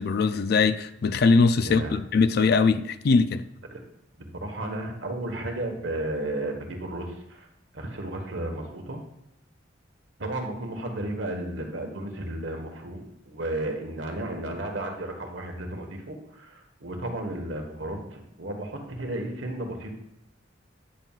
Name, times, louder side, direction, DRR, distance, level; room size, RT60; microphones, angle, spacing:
voice 1, 0.0-3.4, left 4 dB, 55° left, 0.4 m, -21 dB
voice 2, 1.6-1.9 3.7-3.8 4.3-7.5 7.7-9.0 10.2-19.9, right 1 dB, 85° right, 1.5 m, -33 dB
10.0 x 7.4 x 2.4 m
head